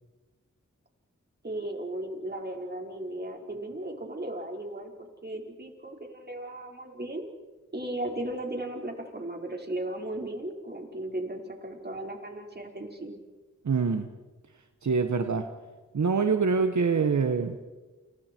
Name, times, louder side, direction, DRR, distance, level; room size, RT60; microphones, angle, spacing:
voice 1, 1.4-7.2 7.7-13.2, right 1 dB, 35° right, 2 dB, 4.7 m, -36 dB
voice 2, 13.6-14.1 14.8-15.5 15.9-17.6, right 5 dB, 70° right, 6 dB, 1.4 m, -25 dB
29.5 x 29.0 x 4.6 m, 1.2 s
wide cardioid pair, 65°, 30 cm